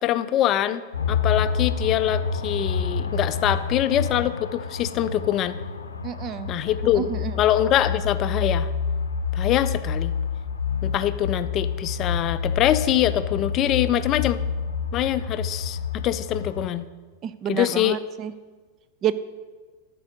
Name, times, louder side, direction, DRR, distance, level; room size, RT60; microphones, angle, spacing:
voice 1, 0.0-5.6 6.5-7.1 7.4-8.7 9.3-10.1 10.8-14.4 14.9-16.9 17.5-18.0, left 12 dB, 35° left, 12 dB, 0.4 m, -24 dB
sound 1, 0.9-16.7, left 6 dB, 75° left, 0.7 m, -28 dB
voice 2, 6.0-6.5 7.0-7.3 17.2-18.3 19.0-19.1, right 9 dB, 30° right, 14 dB, 0.4 m, -28 dB
11.5 x 4.7 x 6.4 m, 1.4 s
figure-of-eight pair, 90°, 0 cm